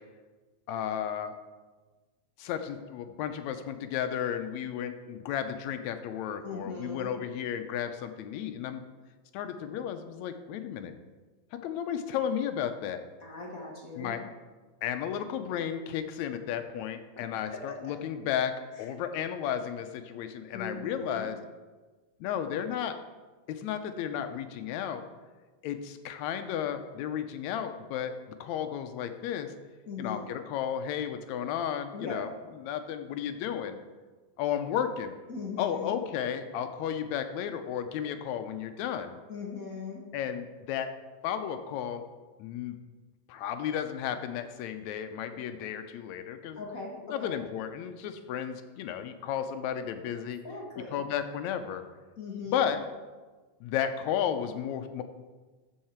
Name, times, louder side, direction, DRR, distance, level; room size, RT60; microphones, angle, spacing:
voice 1, 0.7-1.4 2.4-8.8 9.3-10.9 11.5-13.0 14.0-14.2 14.8-21.4 22.2-23.0 23.5-25.0 25.6-29.5 30.0-32.3 32.6-33.8 34.4-35.1 35.6-39.2 40.1-40.9 41.2-42.0 42.4-42.8 43.3-46.6 47.0-50.4 50.9-51.8 52.5-52.8 53.6-55.0, left 9 dB, 85° left, 8 dB, 2.0 m, -33 dB
voice 2, 6.4-7.1 13.2-14.2 17.5-17.9 20.5-21.3 29.9-30.2 31.9-32.2 35.3-35.9 39.3-40.0 46.6-47.4 50.4-51.0 52.2-52.7, left 4 dB, 45° left, -1 dB, 1.2 m, -39 dB
14.0 x 5.6 x 4.4 m, 1.3 s
omnidirectional pair, 3.3 m